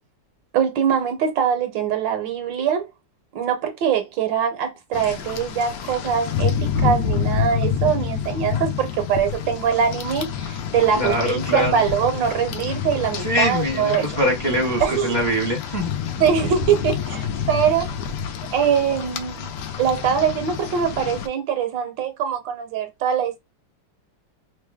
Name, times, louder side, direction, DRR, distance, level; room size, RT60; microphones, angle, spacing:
voice 1, 0.5-2.9 3.3-14.1 14.8-15.2 16.2-17.9 18.5-19.5 19.8-23.4, right 7 dB, 75° right, 1.3 m, -22 dB
Rain, 4.9-21.3, left 7 dB, 75° left, 1.0 m, -28 dB
voice 2, 10.9-11.9 13.2-16.3, equal, 15° left, 0.8 m, -23 dB
3.2 x 2.1 x 3.3 m
omnidirectional pair, 2.1 m